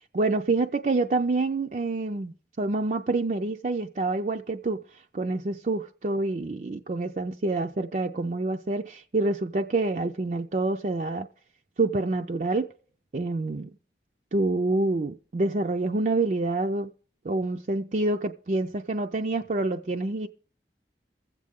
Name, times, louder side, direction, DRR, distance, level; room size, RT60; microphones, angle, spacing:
voice 1, 0.1-4.8 5.1-11.3 11.8-12.7 13.1-13.7 14.3-16.9 17.2-20.3, right 2 dB, 45° right, 0.4 m, -27 dB
22.5 x 7.5 x 3.6 m
head